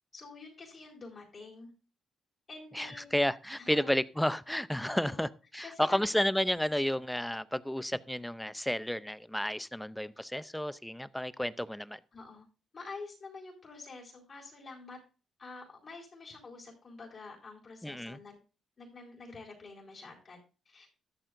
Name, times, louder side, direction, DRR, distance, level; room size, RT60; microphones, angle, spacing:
voice 1, 0.1-1.7 2.5-3.2 3.6-4.0 4.8-5.3 5.6-6.0 12.1-12.5 12.7-15.0 15.4-18.4 18.8-20.9, left 3 dB, 35° left, 4.3 m, -48 dB
voice 2, 2.7-12.0 17.8-18.2, left 1 dB, 5° left, 0.5 m, -32 dB
13.5 x 11.5 x 2.6 m
cardioid pair, 90°, 0 cm